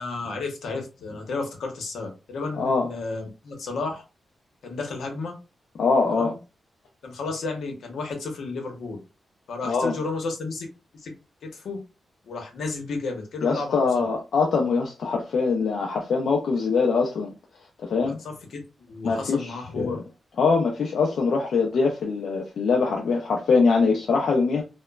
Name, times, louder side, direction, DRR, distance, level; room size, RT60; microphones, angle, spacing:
voice 1, 0.0-4.0 4.6-5.3 6.1-6.4 7.0-9.0 9.5-10.7 10.9-11.1 11.4-11.8 12.3-14.1 18.0-20.0, left 3 dB, 90° left, 0.8 m, -32 dB
voice 2, 2.6-2.9 5.8-6.3 9.7-9.9 13.4-17.3 17.8-18.2 19.0-20.0 20.4-24.6, left 4 dB, 70° left, 0.4 m, -23 dB
2.9 x 2.1 x 2.2 m
wide cardioid pair, 165°, 0 cm